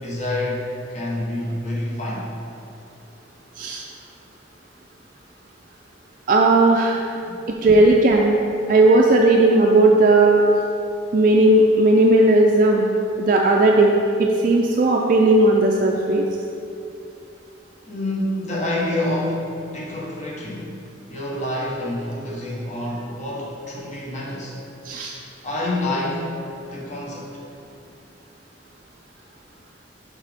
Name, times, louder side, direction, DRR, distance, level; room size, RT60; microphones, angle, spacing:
voice 1, 0.0-2.3 7.2-7.9 17.8-20.7 21.1-24.6 25.4-26.3 26.6-27.4, left 1 dB, 40° left, -4 dB, 1.1 m, -28 dB
voice 2, 6.3-7.0 7.5-8.4 8.7-10.4 11.1-12.9 13.2-16.3 24.8-25.1, right 2 dB, 45° right, 0 dB, 0.3 m, -16 dB
6.5 x 4.9 x 3.4 m, 2.7 s
head